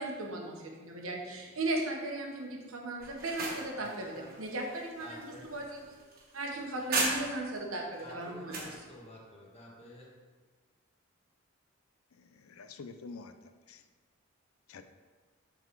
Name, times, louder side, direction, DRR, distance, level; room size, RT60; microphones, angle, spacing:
voice 1, 0.0-5.8 6.3-8.8, right 2 dB, 85° right, 1 dB, 1.2 m, -37 dB
sound 1, 3.0-7.6 8.0-8.8, right 2 dB, 45° right, 1.3 m, -37 dB
voice 2, 5.0-5.4 8.0-10.1, left 1 dB, 30° left, -3 dB, 1.5 m, -50 dB
voice 3, 12.1-13.8 14.7-14.8, left 4 dB, 90° left, 9 dB, 0.5 m, -48 dB
7.5 x 4.0 x 4.6 m, 1.4 s
head